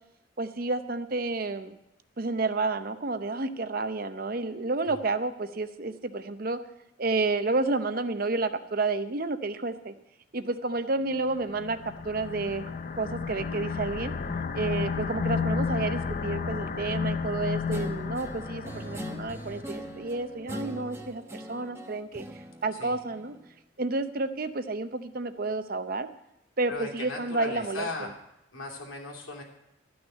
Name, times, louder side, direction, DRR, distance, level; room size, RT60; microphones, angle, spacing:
voice 1, 0.4-1.8 2.2-6.6 7.0-9.9 10.3-12.7 13.0-14.1 14.5-22.3 22.6-23.3 23.8-26.1 26.6-27.9, right 3 dB, 45° right, 10 dB, 0.7 m, -30 dB
sound 1, 11.3-20.0, left 5 dB, 40° left, 0.5 m, -32 dB
Guitar, 17.7-23.5, right 1 dB, 15° right, 0.8 m, -41 dB
voice 2, 26.7-28.1 28.5-29.4, left 2 dB, 90° left, 0 dB, 2.8 m, -37 dB
13.0 x 6.3 x 9.3 m, 0.86 s
head